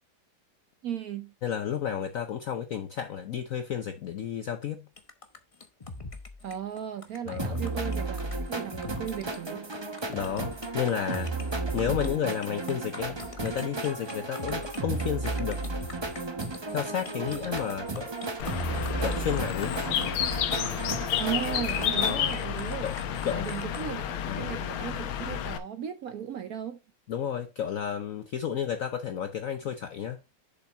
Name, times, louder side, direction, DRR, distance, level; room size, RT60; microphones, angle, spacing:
voice 1, 0.8-1.3 6.4-8.2 8.5-9.7 21.0-22.8 23.3-26.8, right 9 dB, 65° right, 0.9 m, -36 dB
voice 2, 1.4-4.9 7.3-7.6 10.1-11.3 11.7-15.6 16.7-18.1 19.0-19.8 22.0-22.3 22.8-22.9 23.2-23.5 24.2-24.5 27.1-30.2, left 9 dB, 70° left, 0.8 m, -32 dB
sound 1, 5.0-23.8, left 3 dB, 55° left, 0.3 m, -43 dB
sound 2, 7.4-22.2, right 3 dB, 40° right, 0.3 m, -34 dB
Bird, 18.4-25.6, left 9 dB, 90° left, 1.7 m, -31 dB
7.1 x 5.6 x 4.2 m
omnidirectional pair, 2.2 m